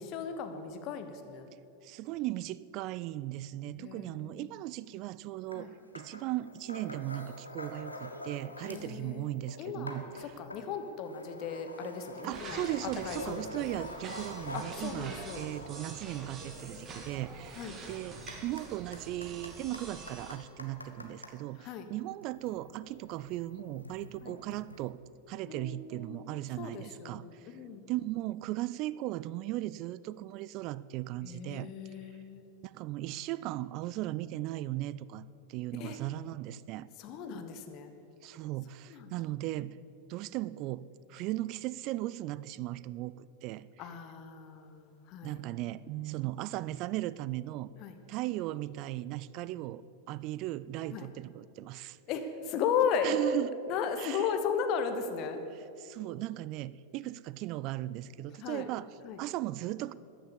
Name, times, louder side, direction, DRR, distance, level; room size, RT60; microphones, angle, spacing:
voice 1, 0.0-1.5 3.8-4.4 5.5-5.7 8.7-12.6 13.1-13.4 14.5-15.4 17.6-17.8 21.6-21.9 24.2-24.3 25.5-27.8 31.2-32.4 35.8-36.0 37.0-37.9 38.9-39.1 43.8-45.4 47.8-47.9 50.9-51.1 52.1-53.1 53.7-55.4 58.4-58.7 59.0-59.2, left 7 dB, 40° left, 8 dB, 1.2 m, -36 dB
voice 2, 1.8-5.7 5.9-10.4 12.2-25.0 25.3-27.6 27.9-31.7 32.6-36.9 38.2-39.8 40.1-43.9 45.2-47.7 48.1-49.8 50.1-52.0 53.0-53.6 54.0-54.3 55.5-58.9 59.2-59.9, right 15 dB, 40° right, 18 dB, 0.4 m, -37 dB
sound 1, 5.5-5.6 6.0-9.0 9.3-21.4 22.1-24.9, left 1 dB, 85° left, 1.2 m, -47 dB
sound 2, 12.3-20.4, right 3 dB, 25° right, 2.0 m, -46 dB
14.0 x 10.0 x 7.0 m, 2.8 s
figure-of-eight pair, 90°, 0 cm